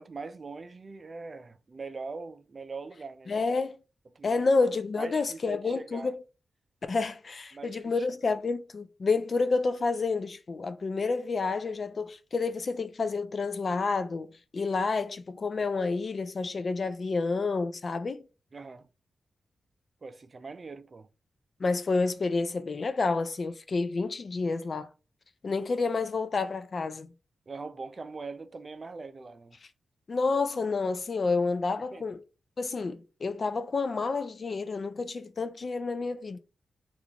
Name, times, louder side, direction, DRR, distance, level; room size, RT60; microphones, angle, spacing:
voice 1, 0.0-3.3 4.1-4.4 5.0-6.1 7.5-8.1 18.5-18.9 20.0-21.1 27.5-29.6 31.9-32.1, right 4 dB, 45° right, 0.4 m, -42 dB
voice 2, 3.3-3.8 4.2-6.2 6.9-18.2 21.6-24.9 25.4-27.1 30.1-32.2 32.6-36.4, left 4 dB, 55° left, 0.4 m, -29 dB
3.5 x 2.5 x 2.9 m
cardioid pair, 50°, 0 cm